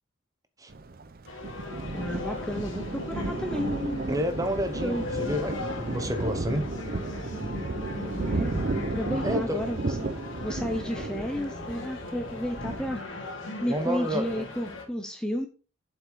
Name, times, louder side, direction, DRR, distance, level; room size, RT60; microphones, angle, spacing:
Thunder, 0.7-13.0, right 2 dB, 45° right, 0.6 m, -34 dB
sound 1, 1.2-14.8, left 3 dB, 70° left, 2.7 m, -38 dB
voice 1, 1.9-4.2 4.8-5.0 8.0-13.0 13.6-15.5, equal, 5° left, 0.8 m, -32 dB
voice 2, 4.1-6.7 9.2-9.6 13.7-14.4, equal, 15° right, 1.1 m, -30 dB
7.7 x 6.4 x 4.7 m
head